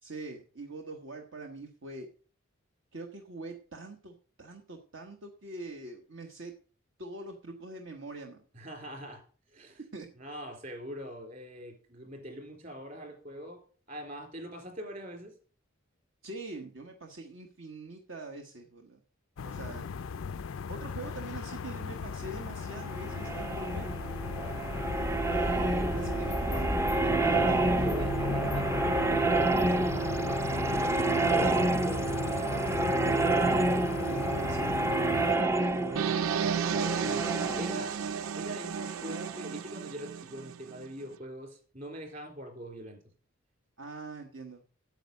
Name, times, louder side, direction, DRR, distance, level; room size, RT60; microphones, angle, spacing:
voice 1, 0.0-2.1 2.9-6.5 7.0-8.4 9.9-10.1 16.2-19.0 19.4-19.9 20.7-23.9 24.9-27.6 34.0-36.1 43.8-44.6, right 2 dB, 65° right, 1.2 m, -43 dB
voice 2, 8.5-9.2 9.5-9.8 10.1-13.6 13.9-15.3 24.3-24.6 27.8-33.3 35.9-38.0 38.3-43.0, equal, 40° right, 3.6 m, -43 dB
sound 1, 19.4-35.4, left 5 dB, 70° left, 0.4 m, -37 dB
sound 2, 22.8-39.4, right 2 dB, 15° right, 0.5 m, -29 dB
sound 3, 36.0-40.9, right 7 dB, 80° right, 0.4 m, -33 dB
9.0 x 8.2 x 6.5 m
head